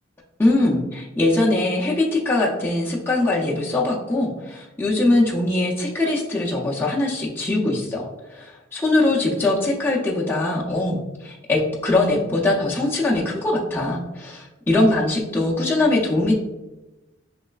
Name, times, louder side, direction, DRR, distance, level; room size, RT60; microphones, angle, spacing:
voice 1, 0.4-16.3, left 2 dB, 10° left, -5 dB, 0.4 m, -22 dB
3.1 x 3.0 x 2.3 m, 1.1 s
head